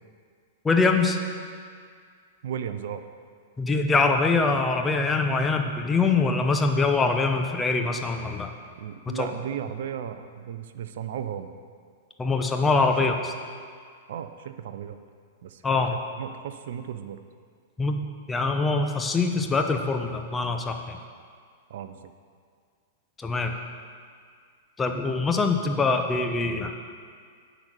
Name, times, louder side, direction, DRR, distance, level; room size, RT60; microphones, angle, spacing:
voice 1, 0.6-1.2 3.6-8.5 9.1-9.3 12.2-13.1 15.6-16.0 17.8-18.0 18.3-21.0 23.2-23.6 24.8-26.7, left 3 dB, 15° left, 4 dB, 0.7 m, -23 dB
voice 2, 2.4-3.0 8.8-11.5 12.9-13.1 14.1-15.0 15.4-15.6 15.9-17.2 21.7-22.1, right 9 dB, 60° right, 9 dB, 0.4 m, -35 dB
10.5 x 4.0 x 6.8 m, 2.1 s
figure-of-eight pair, 100°, 0 cm